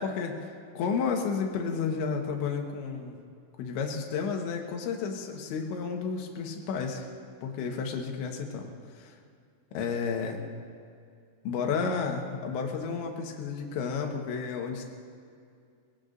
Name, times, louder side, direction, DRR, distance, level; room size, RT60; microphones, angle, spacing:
voice 1, 0.0-3.2 3.6-7.1 7.4-8.7 9.0-9.2 9.7-10.4 11.5-14.8, left 5 dB, 80° left, 2 dB, 3.6 m, -32 dB
24.0 x 20.0 x 2.6 m, 2.3 s
omnidirectional pair, 5.2 m